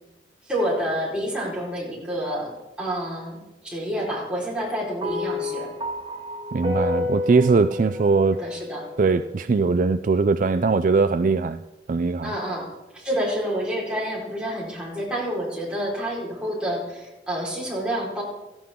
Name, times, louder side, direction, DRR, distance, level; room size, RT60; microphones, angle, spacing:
voice 1, 0.5-5.7 8.3-8.9 12.2-18.2, equal, 5° right, -5 dB, 4.4 m, -28 dB
sound 1, 5.0-9.4, left 2 dB, 30° right, 2.0 m, -30 dB
voice 2, 6.5-8.4 9.0-11.6 11.9-12.3, right 4 dB, 45° right, 12 dB, 0.4 m, -20 dB
17.0 x 14.0 x 3.7 m, 1.0 s
head